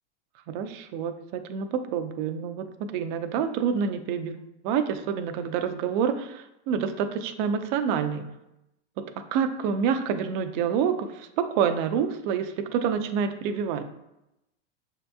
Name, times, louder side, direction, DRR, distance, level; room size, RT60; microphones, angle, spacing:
voice 1, 0.5-8.3 9.3-13.8, right 7 dB, 45° right, 8 dB, 0.4 m, -27 dB
6.1 x 2.7 x 2.2 m, 0.89 s
supercardioid pair, 135°, 34 cm